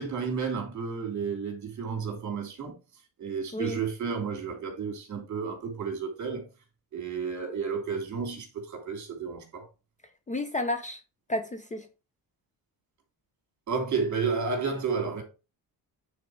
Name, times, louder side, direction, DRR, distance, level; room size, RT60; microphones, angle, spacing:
voice 1, 0.0-2.8 3.2-6.5 6.9-9.6 13.7-15.2, right 5 dB, 50° right, 2.8 m, -32 dB
voice 2, 10.3-11.0 11.3-11.9, left 1 dB, 20° left, 0.6 m, -31 dB
9.3 x 4.2 x 4.7 m
cardioid pair, 165°, 38 cm